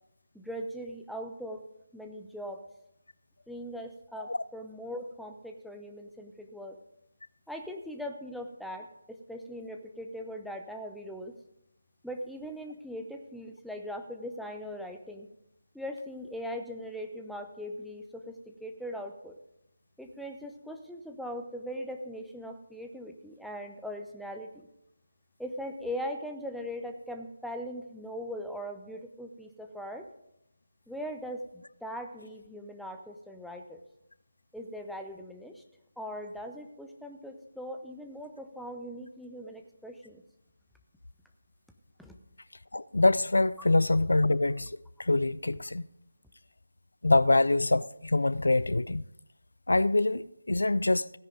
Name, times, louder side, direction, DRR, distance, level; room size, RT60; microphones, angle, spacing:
voice 1, 0.3-1.6 1.9-2.6 3.5-6.8 7.5-11.3 12.0-15.3 15.7-19.4 20.0-24.7 25.4-30.1 30.9-33.8 34.5-35.6 36.0-40.2 42.0-42.1, equal, ahead, 0.7 m, -40 dB
voice 2, 42.7-45.9 47.0-49.0 49.7-51.1, left 2 dB, 70° left, 0.3 m, -25 dB
16.5 x 10.5 x 3.9 m
figure-of-eight pair, 155°, 0 cm